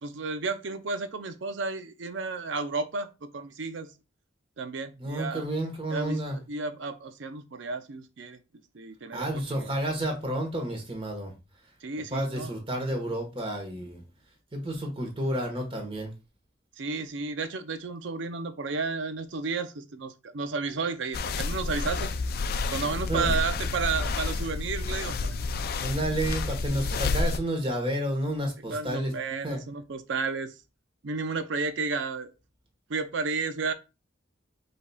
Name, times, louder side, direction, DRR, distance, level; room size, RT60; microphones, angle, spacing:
voice 1, 0.0-3.9 4.6-5.4 5.9-8.4 8.7-9.7 11.8-12.5 16.8-22.1 22.7-25.3 28.7-30.5 31.0-32.3 32.9-33.7, right 4 dB, 85° right, 0.6 m, -32 dB
voice 2, 5.0-6.4 9.1-11.3 12.1-14.0 14.5-16.1 23.1-23.4 25.8-29.1 29.4-29.6, right 1 dB, 30° right, 1.3 m, -30 dB
sound 1, 21.1-27.4, left 3 dB, 55° left, 0.4 m, -30 dB
5.0 x 4.0 x 2.3 m
head